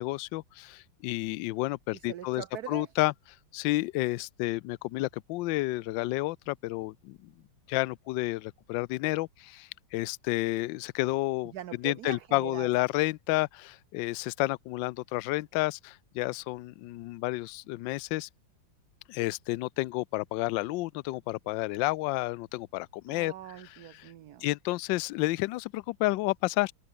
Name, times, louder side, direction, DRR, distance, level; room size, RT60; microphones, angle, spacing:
voice 1, 0.0-3.1 3.5-7.3 7.7-11.5 11.8-18.3 19.1-23.3 24.4-26.7, left 19 dB, 75° left, 1.2 m, -30 dB
voice 2, 1.9-2.9 11.4-12.7 23.1-24.5, right 12 dB, 60° right, 1.2 m, -42 dB
omnidirectional pair, 2.2 m